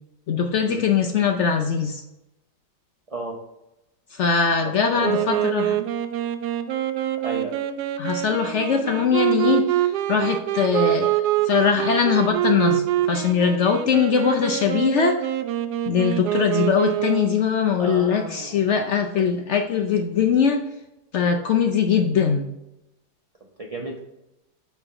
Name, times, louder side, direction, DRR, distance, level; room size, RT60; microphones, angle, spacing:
voice 1, 0.3-2.0 4.1-5.8 8.0-15.3 15.9-20.6 21.1-22.5, left 6 dB, 75° left, 4 dB, 0.6 m, -21 dB
voice 2, 4.6-5.4 7.2-7.6 17.8-18.8 23.6-24.0, right 2 dB, 50° right, -1 dB, 0.4 m, -33 dB
Wind instrument woodwind instrument, 5.0-17.5, right 12 dB, 75° right, 1.1 m, -25 dB
7.2 x 3.5 x 5.4 m, 0.91 s
omnidirectional pair, 1.8 m